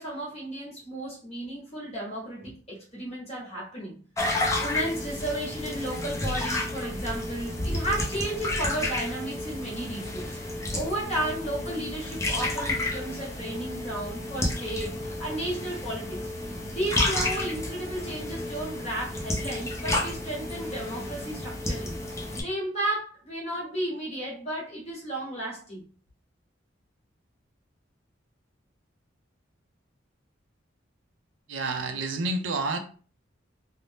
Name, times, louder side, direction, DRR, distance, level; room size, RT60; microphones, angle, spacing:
voice 1, 0.0-4.0 4.6-10.4 10.7-16.3 16.7-21.9 22.4-25.8, right 1 dB, 35° left, 1.0 m, -33 dB
sound 1, 4.2-22.4, left 1 dB, 15° left, 0.6 m, -31 dB
voice 2, 31.5-32.8, right 3 dB, 85° right, 0.5 m, -29 dB
2.6 x 2.0 x 3.3 m
head